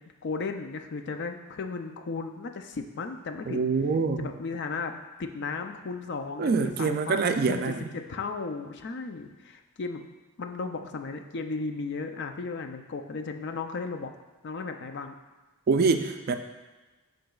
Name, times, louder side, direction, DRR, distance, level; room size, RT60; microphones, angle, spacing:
voice 1, 0.2-3.6 4.2-4.9 5.2-10.0 10.4-14.1 14.4-15.1, left 4 dB, 50° left, 6 dB, 0.4 m, -35 dB
voice 2, 3.5-4.3 6.4-7.9 15.7-16.4, right 4 dB, 45° right, 7 dB, 0.3 m, -25 dB
11.5 x 3.9 x 2.3 m, 1.2 s
head